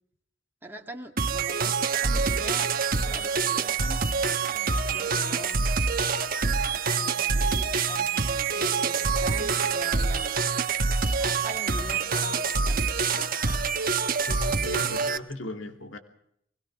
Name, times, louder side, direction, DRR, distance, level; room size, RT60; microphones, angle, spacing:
voice 1, 0.6-5.7 6.7-10.4 11.2-13.8, right 1 dB, 10° right, 2 dB, 2.1 m, -44 dB
sound 1, 1.2-15.2, right 5 dB, 50° right, 1.2 m, -26 dB
voice 2, 14.3-16.0, left 2 dB, 90° left, 6 dB, 2.9 m, -36 dB
23.0 x 21.0 x 6.1 m, 0.71 s
head